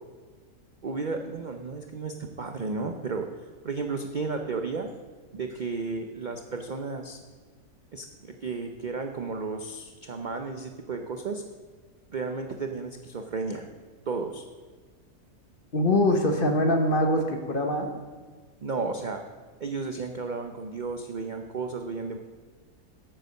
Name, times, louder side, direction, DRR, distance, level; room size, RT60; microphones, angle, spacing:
voice 1, 0.8-3.3 3.6-4.9 5.3-7.2 7.9-11.4 12.1-13.7 14.1-14.4 18.6-19.2 19.6-22.2, right 4 dB, 55° right, 5 dB, 0.5 m, -33 dB
voice 2, 15.7-17.9, left 1 dB, 40° left, 4 dB, 1.1 m, -23 dB
8.8 x 8.0 x 6.6 m, 1.4 s
omnidirectional pair, 1.6 m